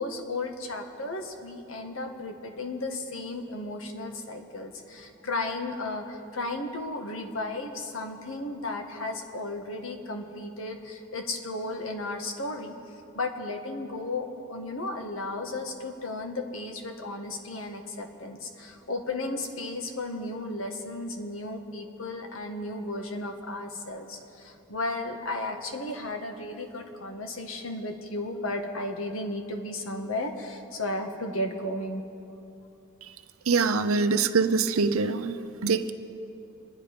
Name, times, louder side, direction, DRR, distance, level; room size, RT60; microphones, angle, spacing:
voice 1, 0.0-12.7 13.1-32.0, left 2 dB, 70° left, 4 dB, 1.5 m, -34 dB
voice 2, 33.5-35.9, right 4 dB, 80° right, 9 dB, 0.7 m, -24 dB
26.0 x 10.5 x 5.1 m, 2.8 s
head